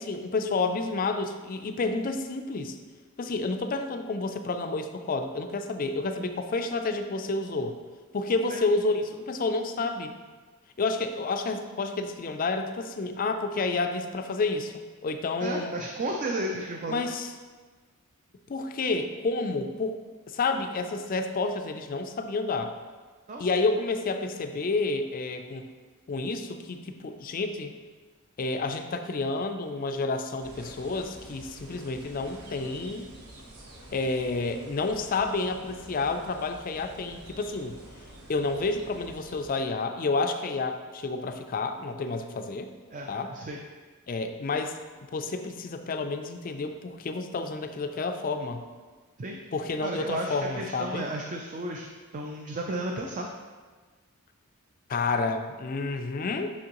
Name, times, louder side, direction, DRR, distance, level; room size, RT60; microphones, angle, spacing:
voice 1, 0.0-2.8 3.2-7.7 8.1-10.1 10.8-14.7 15.0-15.7 16.9-17.3 18.5-20.0 20.3-22.7 23.4-25.7 26.1-27.7 28.4-33.1 33.9-37.8 38.3-42.7 43.1-43.3 44.1-44.7 45.1-48.6 49.5-51.1 54.9-56.5, left 3 dB, 40° left, 7 dB, 0.4 m, -30 dB
voice 2, 15.4-17.0 23.3-23.4 42.9-43.6 49.2-49.4 49.8-51.9 52.1-53.3, right 1 dB, 35° right, 1 dB, 0.4 m, -33 dB
sound 1, 30.4-39.5, right 1 dB, 85° right, 1.2 m, -48 dB
6.2 x 5.9 x 3.0 m, 1.4 s
head